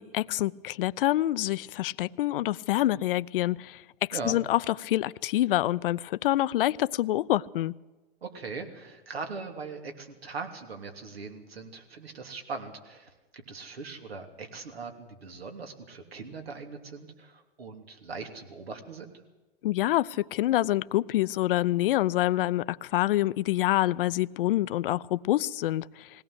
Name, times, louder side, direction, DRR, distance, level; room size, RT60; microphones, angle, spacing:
voice 1, 0.0-7.7 19.6-26.1, left 15 dB, 65° left, 17 dB, 0.6 m, -26 dB
voice 2, 8.2-19.1, right 4 dB, 85° right, 5 dB, 3.2 m, -40 dB
20.5 x 17.5 x 7.9 m, 1.2 s
hypercardioid pair, 115°, 30 cm